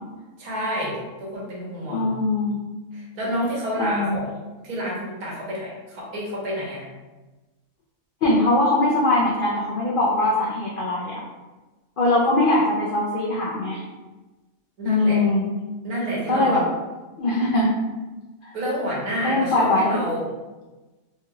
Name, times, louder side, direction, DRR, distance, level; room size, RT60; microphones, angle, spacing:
voice 1, 0.4-2.1 2.9-4.4 4.6-6.9 14.8-15.2 15.8-16.6 18.5-20.3, equal, 75° right, -4 dB, 1.4 m, -29 dB
voice 2, 1.9-2.6 3.8-4.2 8.2-11.2 12.0-13.8 14.8-15.5 16.3-16.7 17.2-17.8 18.4-18.5 19.2-20.0, left 2 dB, 85° left, -5 dB, 0.4 m, -21 dB
3.3 x 2.9 x 2.3 m, 1.2 s
omnidirectional pair, 1.6 m